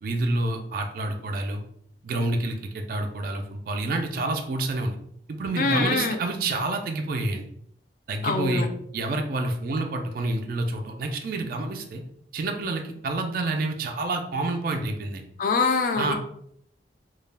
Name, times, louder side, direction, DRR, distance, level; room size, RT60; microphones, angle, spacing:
voice 1, 0.0-1.6 2.0-5.0 5.3-7.5 8.1-8.7 8.9-12.0 12.3-15.3 15.9-16.1, right 2 dB, 55° right, 4 dB, 0.3 m, -28 dB
voice 2, 5.6-6.2 8.2-8.7 15.4-16.1, left 4 dB, 50° left, 6 dB, 0.3 m, -24 dB
2.3 x 2.0 x 3.2 m, 0.69 s
head